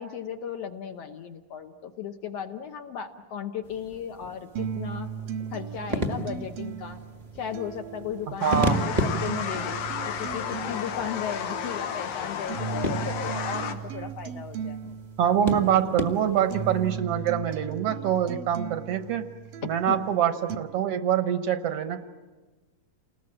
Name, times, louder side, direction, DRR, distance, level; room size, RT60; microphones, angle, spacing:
voice 1, 0.0-5.1 5.5-7.0 7.3-9.8 10.2-14.8 19.9-20.0, left 8 dB, 65° left, 6 dB, 1.7 m, -36 dB
sound 1, 3.6-17.0, equal, 40° right, 0.5 m, -35 dB
sound 2, 4.6-20.6, right 7 dB, 90° right, 2.9 m, -37 dB
sound 3, 8.4-13.7, left 8 dB, 85° left, 3.1 m, -33 dB
voice 2, 8.4-8.8 15.2-19.3 19.6-22.0, right 9 dB, 65° right, 9 dB, 1.5 m, -25 dB
29.0 x 20.0 x 8.9 m, 1.2 s
omnidirectional pair, 3.9 m